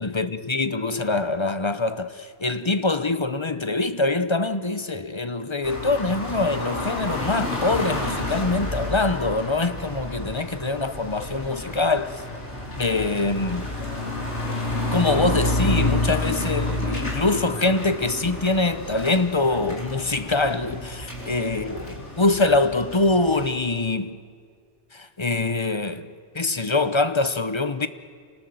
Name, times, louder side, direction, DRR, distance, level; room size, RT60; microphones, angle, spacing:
voice 1, 0.0-12.1 12.8-13.7 14.9-24.1 24.9-27.9, left 3 dB, 30° left, 0.7 m, -24 dB
sound 1, 5.6-23.5, left 1 dB, 80° left, 3.8 m, -30 dB
27.0 x 19.5 x 7.8 m
omnidirectional pair, 1.2 m